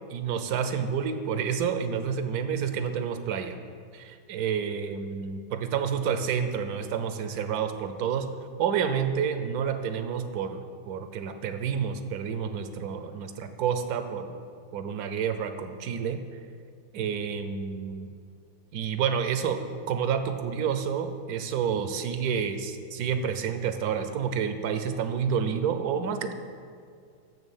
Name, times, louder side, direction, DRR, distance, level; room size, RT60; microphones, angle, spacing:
voice 1, 0.1-3.6 3.9-8.3 8.6-10.6 10.9-14.4 14.7-16.2 16.9-18.1 18.7-19.6 19.9-26.3, right 7 dB, 85° right, 8 dB, 1.1 m, -29 dB
6.7 x 6.2 x 7.1 m, 2.3 s
omnidirectional pair, 1.6 m